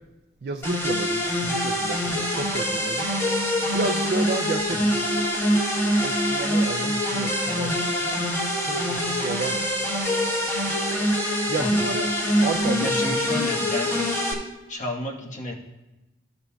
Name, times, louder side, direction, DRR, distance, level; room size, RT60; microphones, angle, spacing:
voice 1, 0.4-3.1 3.7-5.0 6.0-7.7 8.6-9.6 11.5-12.1 12.4-13.2, right 3 dB, 55° right, 5 dB, 0.4 m, -31 dB
sound 1, 0.6-14.3, equal, 15° left, 1.6 m, -24 dB
voice 2, 11.6-11.9 12.8-14.2 14.7-15.5, left 1 dB, 45° left, 0 dB, 1.2 m, -31 dB
14.5 x 6.9 x 2.3 m, 1.0 s
head